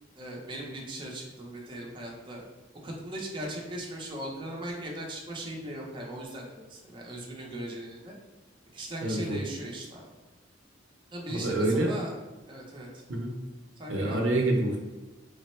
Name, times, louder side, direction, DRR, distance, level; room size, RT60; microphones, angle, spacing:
voice 1, 0.2-2.4 2.8-8.1 8.7-10.2 11.1-12.2 12.5-13.0 13.8-14.3, right 1 dB, 25° right, -2 dB, 0.7 m, -39 dB
voice 2, 9.0-9.4 11.3-11.9 13.1-13.4 13.9-14.8, right 1 dB, 85° right, 1 dB, 0.7 m, -27 dB
3.3 x 2.1 x 4.2 m, 1.2 s
head